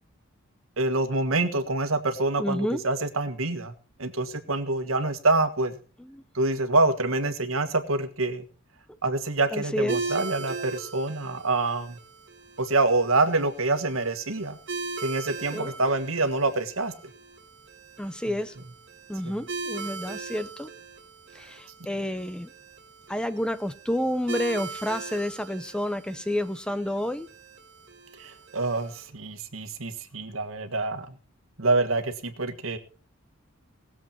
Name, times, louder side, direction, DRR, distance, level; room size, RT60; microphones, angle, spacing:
voice 1, 0.8-3.7 4.0-5.8 6.3-8.5 9.0-12.0 12.6-14.6 15.0-16.9 19.2-19.4 28.2-31.2 31.6-32.8, right 2 dB, 75° right, 1.6 m, -26 dB
voice 2, 2.4-2.8 6.0-6.2 9.5-10.1 15.5-15.7 18.0-18.6 19.1-20.7 21.3-22.5 23.1-27.3, equal, 5° left, 0.5 m, -30 dB
sound 1, 9.9-29.0, right 4 dB, 60° right, 1.9 m, -39 dB
19.5 x 7.6 x 4.4 m
head